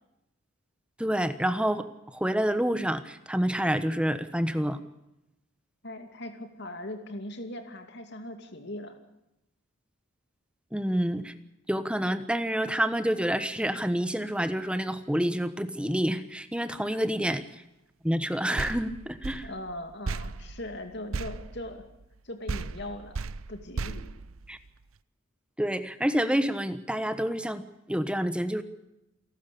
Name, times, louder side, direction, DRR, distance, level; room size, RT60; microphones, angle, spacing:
voice 1, 1.0-4.8 10.7-11.3 11.7-17.4 18.0-19.5 24.5-24.6 25.6-27.6 27.9-28.6, equal, 5° right, 11 dB, 1.2 m, -28 dB
voice 2, 5.8-9.0 16.9-17.0 19.4-21.8 22.2-23.2 23.5-24.2, left 1 dB, 55° left, 6 dB, 2.6 m, -40 dB
sound 1, 18.6-22.2 22.5-24.9, right 4 dB, 90° right, 0.7 m, -36 dB
28.0 x 12.5 x 8.6 m, 0.88 s
head